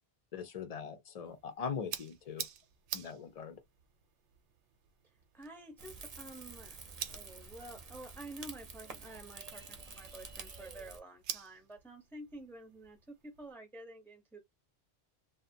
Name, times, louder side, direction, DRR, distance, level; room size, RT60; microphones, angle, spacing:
voice 1, 0.3-2.5 2.9-3.6, left 6 dB, 60° left, 0.4 m, -41 dB
sound 1, 1.2-13.5, right 9 dB, 90° right, 0.9 m, -49 dB
voice 2, 5.3-6.8 7.1-14.4, right 1 dB, ahead, 0.5 m, -50 dB
Rain / Fire, 5.8-11.0, right 4 dB, 45° right, 0.6 m, -49 dB
2.6 x 2.0 x 2.6 m
omnidirectional pair, 1.1 m